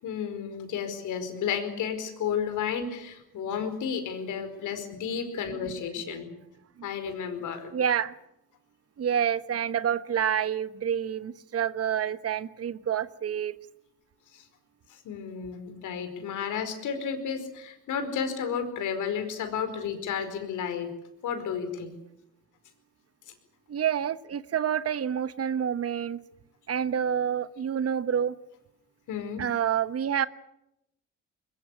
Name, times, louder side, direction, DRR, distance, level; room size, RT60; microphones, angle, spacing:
voice 1, 0.0-6.3 6.8-7.7 14.3-14.4 14.9-20.9 21.2-22.0 29.1-29.5, left 7 dB, 80° left, 4.9 m, -32 dB
voice 2, 7.7-8.1 9.0-13.6 23.7-26.2 26.7-28.3 29.4-30.3, right 8 dB, 50° right, 1.2 m, -28 dB
22.0 x 22.0 x 8.4 m
cardioid pair, 90°, 30 cm